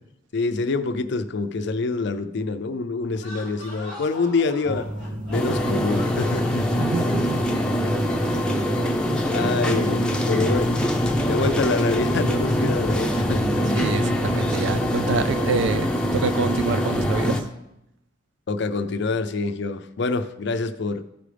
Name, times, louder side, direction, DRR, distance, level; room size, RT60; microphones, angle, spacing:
voice 1, 0.3-4.9 5.3-6.7 9.3-10.8 11.2-13.6 18.5-21.0, left 3 dB, 65° left, 0.5 m, -26 dB
sound 1, 3.1-8.5, left 2 dB, 85° right, 3.4 m, -42 dB
sound 2, 4.6-14.9, equal, 45° right, 0.7 m, -38 dB
sound 3, 5.3-17.4, equal, 5° left, 0.7 m, -23 dB
voice 2, 6.8-7.4 13.8-17.4, right 4 dB, 65° right, 0.3 m, -27 dB
13.0 x 4.9 x 3.4 m
head